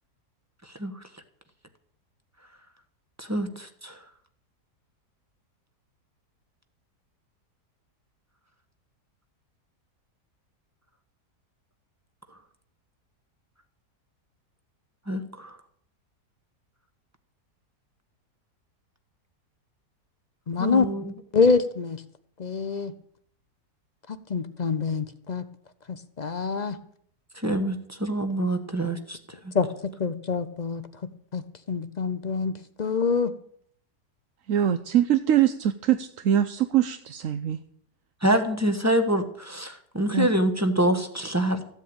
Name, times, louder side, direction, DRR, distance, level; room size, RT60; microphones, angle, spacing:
voice 1, 3.2-4.0 15.1-15.5 20.6-21.1 27.4-29.2 38.2-41.6, right 1 dB, 10° right, 7 dB, 1.2 m, -26 dB
voice 2, 20.5-20.9 21.3-22.0 22.4-22.9 24.1-25.4 25.9-26.8 29.5-30.9 31.3-33.3, left 5 dB, 45° left, 11 dB, 0.5 m, -26 dB
voice 3, 34.5-37.6 40.1-40.3, right 10 dB, 60° right, 9 dB, 1.0 m, -23 dB
14.5 x 8.2 x 8.8 m, 0.63 s
omnidirectional pair, 1.7 m